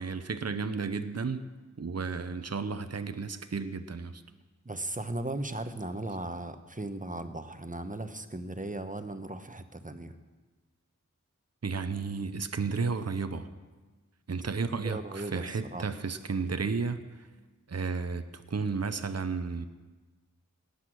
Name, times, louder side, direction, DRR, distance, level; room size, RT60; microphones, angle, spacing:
voice 1, 0.0-1.4 1.8-4.2 11.6-13.5 14.3-17.0 17.7-19.7, right 4 dB, 55° right, 10 dB, 0.7 m, -33 dB
voice 2, 4.6-10.1 14.8-15.4 15.7-15.8, right 2 dB, 25° right, 9 dB, 1.0 m, -37 dB
18.5 x 8.2 x 6.2 m, 1.3 s
wide cardioid pair, 45°, 31 cm